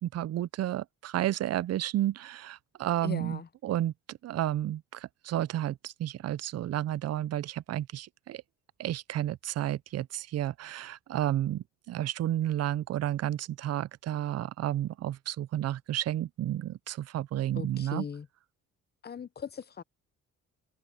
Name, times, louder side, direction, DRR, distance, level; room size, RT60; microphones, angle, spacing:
voice 1, 0.0-8.4 8.8-18.0, right 12 dB, 55° right, 0.5 m, -32 dB
voice 2, 3.0-3.5 17.5-18.3 19.0-19.8, left 6 dB, 35° left, 0.8 m, -39 dB
cardioid pair, 90°, 30 cm